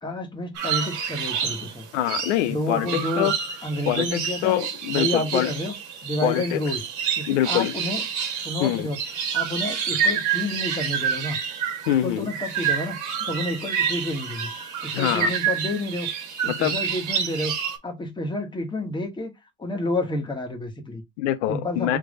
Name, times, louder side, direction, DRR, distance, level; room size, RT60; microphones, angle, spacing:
voice 1, 0.0-1.9 2.4-3.3 3.6-4.6 4.9-5.7 6.0-6.8 7.2-8.1 8.4-9.0 9.3-11.4 12.0-14.5 14.8-16.1 16.4-17.6 17.8-19.3 19.6-21.0 21.5-22.0, left 1 dB, 10° left, 1.4 m, -29 dB
sound 1, 0.5-17.8, right 7 dB, 50° right, 1.5 m, -28 dB
voice 2, 1.9-3.3 3.9-5.5 6.2-6.6 7.3-7.7 8.6-8.9 11.9-12.3 14.9-15.3 16.5-16.7 21.2-22.0, left 13 dB, 70° left, 0.7 m, -24 dB
3.7 x 3.3 x 3.7 m
hypercardioid pair, 95°, 37 cm